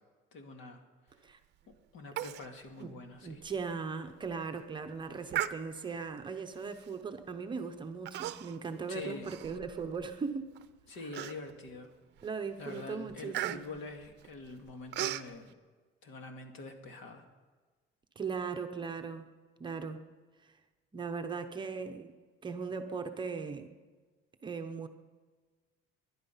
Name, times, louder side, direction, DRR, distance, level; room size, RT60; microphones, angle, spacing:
voice 1, 0.3-0.8 1.2-1.3 1.9-3.4 8.9-9.3 10.9-11.9 12.6-15.5 16.0-17.3, left 3 dB, 65° left, 5 dB, 2.2 m, -45 dB
Human voice, 2.2-2.5 2.8-2.9 3.4-3.5 4.1-4.3 5.3-6.0 6.8-7.0 8.1-8.7 9.0-10.1 10.6-10.7 11.1-11.7 12.2-12.4 12.7-15.3, right 13 dB, 55° right, 0.6 m, -37 dB
voice 2, 3.2-10.5 12.2-13.7 18.2-19.3 19.6-20.0 20.9-22.1 22.4-23.7 24.4-24.9, right 5 dB, 20° right, 6 dB, 0.8 m, -38 dB
21.5 x 11.0 x 5.6 m, 1.4 s
cardioid pair, 170°, 21 cm